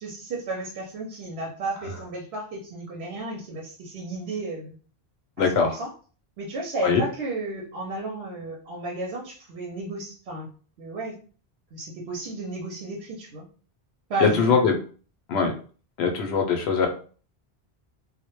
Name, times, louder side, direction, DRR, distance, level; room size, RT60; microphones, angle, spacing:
voice 1, 0.0-4.8 5.4-5.9 6.4-10.5 10.8-11.2 11.7-13.5 14.1-14.7, right 2 dB, 85° right, -1 dB, 0.8 m, -33 dB
voice 2, 5.4-5.8 6.8-7.0 14.2-14.7 15.3-15.5 16.0-16.9, left 5 dB, 80° left, 3 dB, 0.8 m, -21 dB
2.1 x 2.1 x 2.9 m, 0.40 s
omnidirectional pair, 1.1 m